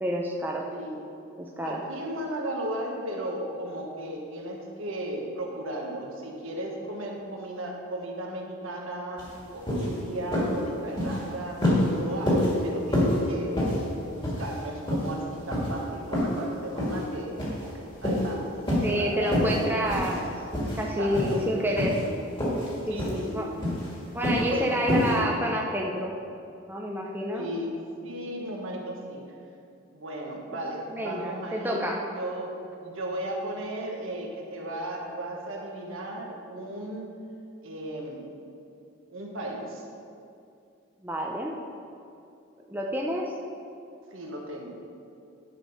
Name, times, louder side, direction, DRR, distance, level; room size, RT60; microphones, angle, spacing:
voice 1, 0.0-0.6 1.4-1.8 18.8-20.2 20.8-22.0 22.9-23.5 24.1-26.1 26.7-27.5 30.9-32.0 41.0-41.6 42.7-43.2, equal, 10° right, -1 dB, 0.6 m, -28 dB
voice 2, 1.6-13.7 14.1-18.5 18.8-19.8 21.0-21.5 22.9-23.7 24.4-25.1 27.3-29.3 29.9-31.8 32.2-37.2 37.6-38.3 39.1-39.8 44.1-44.7, right 1 dB, 75° right, 0 dB, 1.4 m, -35 dB
sound 1, 9.2-9.3 9.7-9.9 10.3-10.6 10.9-11.2 11.6-11.9 12.3-12.5 12.9-13.2 13.6-13.8 14.2-14.6 14.9-15.1 15.5-15.7 16.1-16.4 16.8-17.0 17.4-17.7 18.0-18.3 18.7-18.9 19.3-19.6 19.9-20.2 20.5-20.8 21.1-21.4 21.8-22.1 22.4-22.7 23.0-23.2 23.6-23.9 24.2-24.5 24.9-25.1, left 1 dB, 25° left, 2.1 m, -26 dB
10.0 x 5.3 x 5.5 m, 2.6 s
head